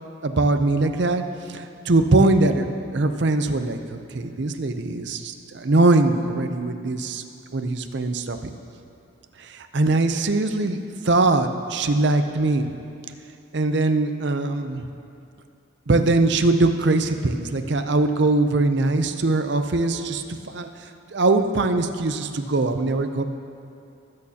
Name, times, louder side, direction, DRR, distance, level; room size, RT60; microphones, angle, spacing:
voice 1, 0.2-1.2 1.5-7.2 7.5-8.5 9.4-10.8 11.0-12.7 13.5-14.9 15.9-20.7 21.1-23.2, right 2 dB, 55° right, 7 dB, 0.6 m, -21 dB
19.5 x 8.5 x 2.8 m, 2.6 s
head